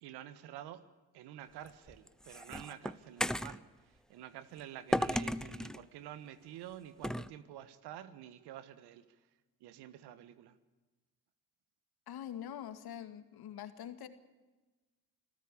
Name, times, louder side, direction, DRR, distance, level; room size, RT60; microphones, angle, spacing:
voice 1, 0.0-0.8 1.1-9.0 9.6-10.6, right 11 dB, 85° right, 13 dB, 1.5 m, -49 dB
sound 1, 1.7-3.6 4.9-5.8 7.0-7.3, equal, ahead, 0.8 m, -34 dB
voice 2, 12.1-14.1, left 10 dB, 70° left, 10 dB, 2.2 m, -44 dB
26.5 x 15.0 x 8.5 m, 1.2 s
supercardioid pair, 60°, 39 cm